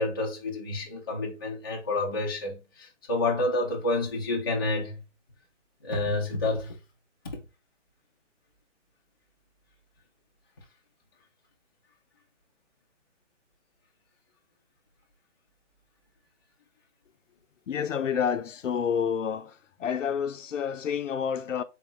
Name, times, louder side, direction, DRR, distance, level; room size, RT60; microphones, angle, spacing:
voice 1, 0.0-5.0 5.8-6.8 7.2-7.4, left 2 dB, 20° left, 0.5 m, -29 dB
voice 2, 17.7-19.5 19.8-21.6, left 7 dB, 80° left, 0.6 m, -29 dB
4.0 x 2.4 x 4.2 m
hypercardioid pair, 155°, 37 cm